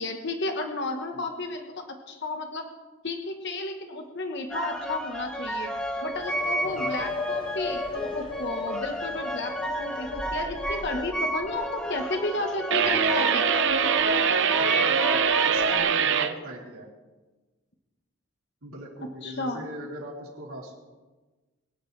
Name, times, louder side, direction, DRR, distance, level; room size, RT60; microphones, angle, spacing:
voice 1, 0.0-2.6 3.0-5.7 6.0-13.5 19.2-19.6, left 2 dB, 50° left, 4 dB, 1.3 m, -32 dB
sound 1, 4.5-15.8, right 1 dB, 5° left, 1.0 m, -33 dB
sound 2, 6.0-13.7, left 3 dB, 20° left, 0.5 m, -37 dB
voice 2, 6.6-6.9 13.9-14.1 14.6-16.9 18.6-20.7, right 1 dB, 75° right, -3 dB, 3.6 m, -40 dB
sound 3, 12.7-16.3, right 6 dB, 55° right, 0.7 m, -23 dB
22.5 x 11.0 x 3.4 m, 1.2 s
head